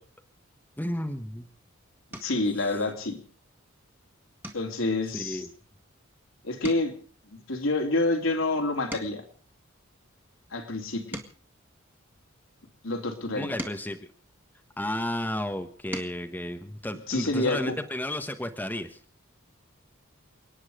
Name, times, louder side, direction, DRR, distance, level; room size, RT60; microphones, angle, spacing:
voice 1, 0.8-1.5 2.6-2.7 5.1-5.5 13.3-14.0 14.8-19.0, left 1 dB, 10° left, 7 dB, 1.1 m, -32 dB
sound 1, 2.1-2.5 3.0-3.4 3.7-3.9 4.4-6.2 6.5-9.4 10.0-12.5 13.2-15.0 15.6-16.3 17.7-17.8 18.1-18.3, right 1 dB, 10° right, 1.9 m, -44 dB
voice 2, 2.2-3.2 4.5-5.4 6.4-6.9 7.3-9.2 10.5-11.2 12.8-13.6 17.1-17.8, left 2 dB, 70° left, 3 dB, 3.0 m, -28 dB
29.5 x 9.8 x 4.9 m, 0.41 s
head